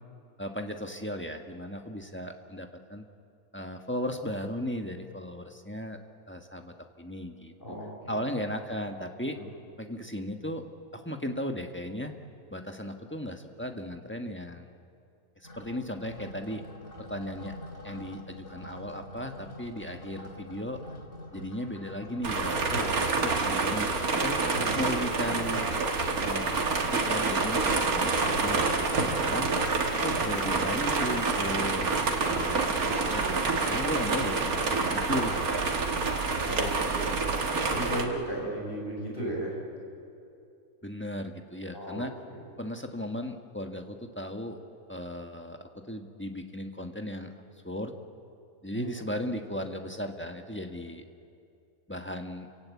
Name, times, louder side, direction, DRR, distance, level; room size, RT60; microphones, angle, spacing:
voice 1, 0.4-3.0 3.5-6.0 6.3-7.5 8.1-9.4 9.8-10.7 10.9-12.1 12.5-14.7 15.4-16.6 17.1-17.5 17.8-20.8 21.3-22.7 23.2-24.4 24.7-25.7 26.2-26.6 26.9-29.5 29.9-31.9 32.2-35.7 36.4-36.5 40.8-42.1 42.6-44.6 44.9-47.3 47.6-47.9 48.6-51.0 51.9-52.5, left 1 dB, 10° left, 4 dB, 1.2 m, -36 dB
sound 1, 15.4-33.6, left 1 dB, 55° left, 2.5 m, -47 dB
sound 2, 22.2-38.0, right 4 dB, 85° right, 2.1 m, -27 dB
voice 2, 24.5-24.8 36.4-37.3 37.7-39.5 41.7-42.4 48.7-49.0, right 1 dB, 40° left, -3 dB, 6.5 m, -35 dB
29.0 x 17.0 x 8.3 m, 2.5 s
omnidirectional pair, 1.5 m